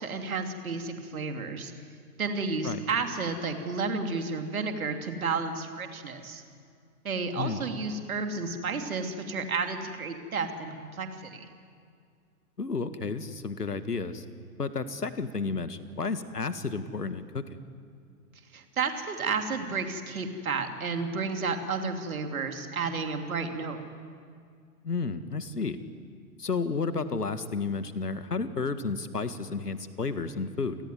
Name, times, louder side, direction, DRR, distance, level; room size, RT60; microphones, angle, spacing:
voice 1, 0.0-1.7 2.2-6.4 7.0-11.5 18.5-23.8, right 4 dB, 60° right, 5 dB, 3.0 m, -32 dB
voice 2, 12.6-14.2 14.6-17.4 24.8-25.8 26.4-30.8, left 4 dB, 75° left, 11 dB, 1.8 m, -32 dB
28.5 x 19.5 x 9.5 m, 2.2 s
figure-of-eight pair, 115°, 47 cm